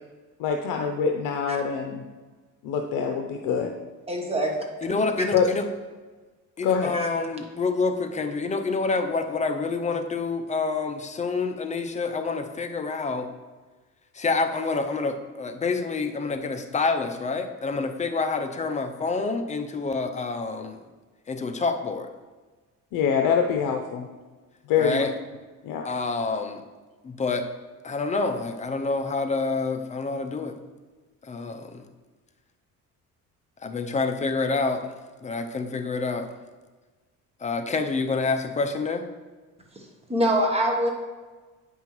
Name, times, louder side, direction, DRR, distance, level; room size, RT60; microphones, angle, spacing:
voice 1, 0.4-2.0 2.6-3.7 5.3-5.5 6.6-6.9 22.9-24.1 24.7-25.1 25.6-25.8, left 6 dB, 80° left, 3 dB, 0.6 m, -24 dB
voice 2, 4.1-4.6 6.9-7.1 39.7-39.8 40.1-40.9, right 1 dB, 20° right, 2 dB, 1.0 m, -24 dB
voice 3, 4.8-5.7 6.6-13.3 14.1-20.8 21.3-22.1 24.8-25.1 25.8-26.6 27.0-27.5 27.8-30.5 31.3-31.8 33.6-34.9 35.2-36.3 37.4-39.0, left 4 dB, 20° left, 6 dB, 0.5 m, -27 dB
8.6 x 5.5 x 3.0 m, 1.3 s
cardioid pair, 120°, 32 cm